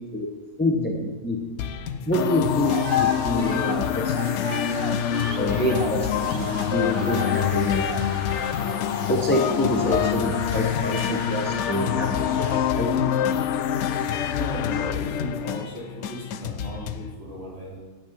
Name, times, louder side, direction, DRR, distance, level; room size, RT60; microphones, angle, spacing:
voice 1, 0.6-1.4 2.1-4.1 5.4-7.9 8.6-8.8 9.1-12.2 12.8-12.9, left 1 dB, 10° left, 2 dB, 0.9 m, -26 dB
sound 1, 1.6-17.1, left 8 dB, 80° left, 1.1 m, -35 dB
sound 2, 2.1-15.6, left 9 dB, 65° left, 0.8 m, -26 dB
sound 3, 2.6-12.6, right 5 dB, 80° right, 1.5 m, -38 dB
voice 2, 14.2-17.8, right 1 dB, 45° right, -6 dB, 4.1 m, -37 dB
9.0 x 8.7 x 7.1 m, 1.3 s
omnidirectional pair, 1.5 m